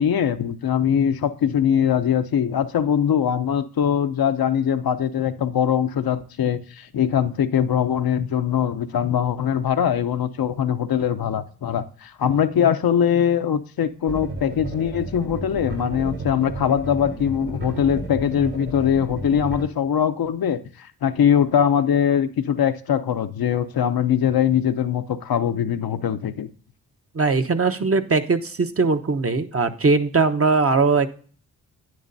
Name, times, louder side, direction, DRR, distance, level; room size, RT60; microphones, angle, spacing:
voice 1, 0.0-26.5, left 8 dB, 60° left, 0.8 m, -22 dB
sound 1, 14.1-19.6, right 2 dB, 90° right, 3.5 m, -33 dB
voice 2, 27.1-31.1, right 4 dB, 35° right, 0.9 m, -20 dB
10.5 x 9.5 x 2.7 m
supercardioid pair, 40°, 41 cm